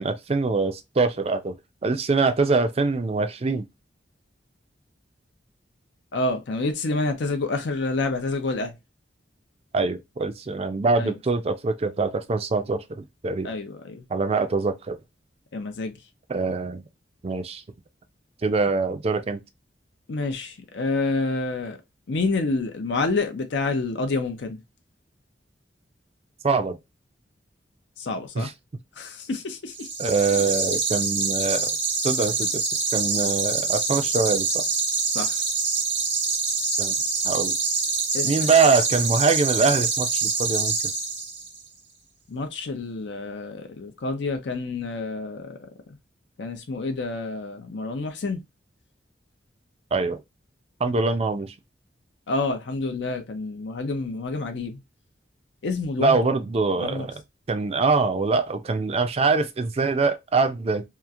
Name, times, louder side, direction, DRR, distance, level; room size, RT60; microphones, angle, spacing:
voice 1, 0.0-1.6 1.8-3.6 9.7-13.5 14.1-15.0 16.3-16.8 17.2-17.6 18.4-19.4 26.4-26.8 28.4-28.5 30.0-31.7 32.0-32.7 32.9-34.6 36.8-36.9 37.2-37.6 38.2-40.8 49.9-50.2 50.8-51.5 56.0-57.2 57.5-60.9, right 4 dB, 35° right, 0.4 m, -23 dB
voice 2, 6.1-8.7 11.0-11.1 13.4-14.0 15.5-15.9 20.1-21.8 22.1-24.6 28.0-28.5 29.0-29.9 35.1-35.3 38.1-38.3 42.3-45.6 46.4-48.4 52.3-54.8 55.6-56.2 56.8-57.1, left 3 dB, 70° left, 0.5 m, -28 dB
sound 1, 29.7-41.6, right 4 dB, 90° right, 1.1 m, -25 dB
2.9 x 2.4 x 2.4 m
head